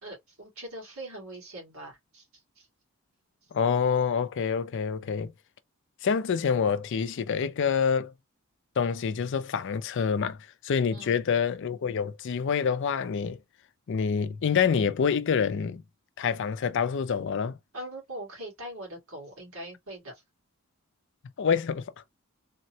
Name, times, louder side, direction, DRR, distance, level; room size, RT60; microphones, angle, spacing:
voice 1, 0.0-2.3 2.6-2.7 10.9-11.2 17.7-20.2, right 1 dB, 70° right, 2.1 m, -41 dB
voice 2, 3.5-5.3 6.0-8.1 8.8-10.4 10.6-13.4 13.9-15.8 16.2-17.6 21.4-21.8, left 6 dB, 60° left, 0.4 m, -26 dB
3.6 x 2.1 x 2.7 m
head